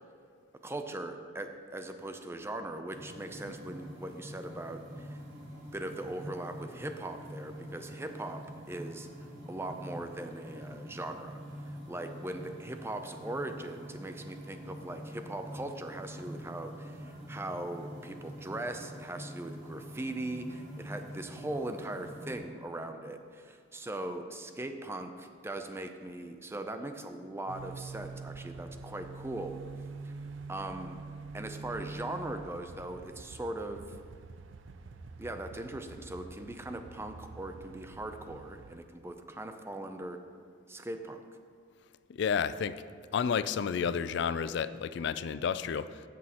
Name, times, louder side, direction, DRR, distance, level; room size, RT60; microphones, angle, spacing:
voice 1, 0.6-5.2 5.7-8.4 8.7-9.1 9.5-11.4 11.7-29.6 30.0-30.1 30.5-31.0 31.3-33.8 35.2-40.2 40.7-41.2, right 1 dB, 15° right, 7 dB, 0.5 m, -40 dB
sound 1, 2.9-22.4, equal, 85° right, 2.4 m, -46 dB
sound 2, 27.5-38.8, right 4 dB, 70° right, 0.4 m, -46 dB
voice 2, 42.1-42.8 43.1-46.0, left 7 dB, 60° left, 14 dB, 0.3 m, -31 dB
16.5 x 6.1 x 2.9 m, 2.3 s
head